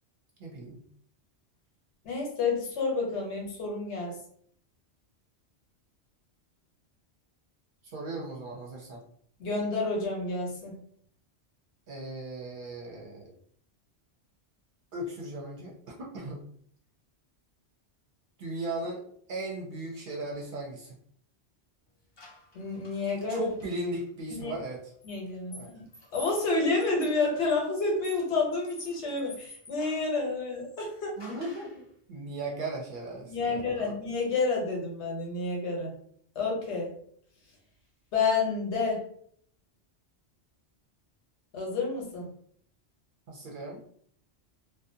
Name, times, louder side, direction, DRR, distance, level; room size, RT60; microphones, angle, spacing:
voice 1, 0.4-0.8 7.8-9.0 11.9-13.3 14.9-16.4 18.4-19.0 19.3-20.9 23.3-24.9 25.5-25.7 31.2-31.8 32.1-34.0 43.3-43.8, right 2 dB, 55° right, -2 dB, 0.7 m, -37 dB
voice 2, 2.0-4.2 9.4-10.7 22.5-23.5 24.4-24.6 25.0-25.8 26.1-31.2 33.2-35.9 36.3-36.9 38.1-39.0 41.5-42.3, left 3 dB, 85° left, -1 dB, 1.1 m, -29 dB
sound 1, 22.2-24.0 25.0-30.2 31.2-31.8, left 1 dB, 35° left, 0.4 m, -49 dB
2.5 x 2.1 x 2.6 m, 0.62 s
omnidirectional pair, 1.1 m